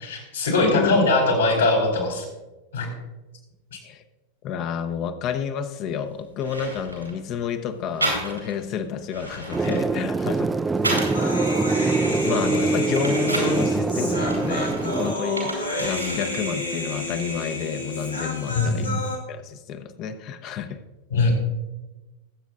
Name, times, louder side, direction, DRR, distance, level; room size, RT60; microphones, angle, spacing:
voice 1, 0.0-2.3 2.7-2.9 3.7-3.8 18.5-19.0 21.1-21.3, left 2 dB, 70° left, 0 dB, 3.8 m, -21 dB
voice 2, 0.6-1.1 3.8-4.0 4.4-10.6 11.7-18.9 19.3-20.8, left 7 dB, 40° left, 8 dB, 0.8 m, -30 dB
sound 1, 6.0-6.1 6.4-7.2 8.0-8.6 9.0-11.3 11.7-13.6 14.2-16.3 16.6-17.4, right 1 dB, 85° right, 3.4 m, -32 dB
sound 2, 9.5-15.1, right 3 dB, 10° right, 0.3 m, -24 dB
Human voice, 11.1-19.2, left 1 dB, 85° left, 1.6 m, -30 dB
18.5 x 8.2 x 2.5 m, 1.1 s
figure-of-eight pair, 90°, 0 cm